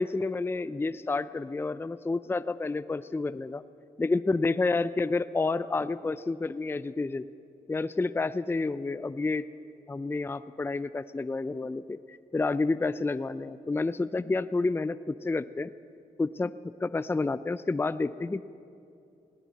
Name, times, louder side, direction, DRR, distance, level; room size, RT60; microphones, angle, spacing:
voice 1, 0.0-3.6 4.0-7.3 7.7-9.4 9.9-15.7 16.2-18.5, left 3 dB, 15° left, 14 dB, 0.4 m, -29 dB
19.5 x 18.0 x 4.1 m, 2.6 s
cardioid pair, 65°, 15 cm